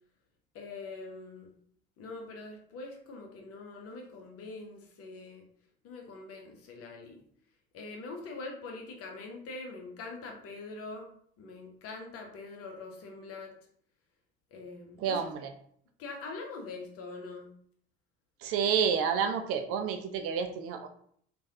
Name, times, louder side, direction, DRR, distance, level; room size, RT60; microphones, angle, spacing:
voice 1, 0.5-1.5 2.0-5.5 5.8-7.2 7.7-11.1 11.4-13.5 14.5-15.3 16.0-17.5, left 3 dB, 50° left, 2 dB, 0.8 m, -43 dB
voice 2, 15.0-15.5 18.4-20.9, right 7 dB, 50° right, 6 dB, 0.4 m, -29 dB
3.2 x 2.2 x 2.7 m, 0.62 s
figure-of-eight pair, 55°, 31 cm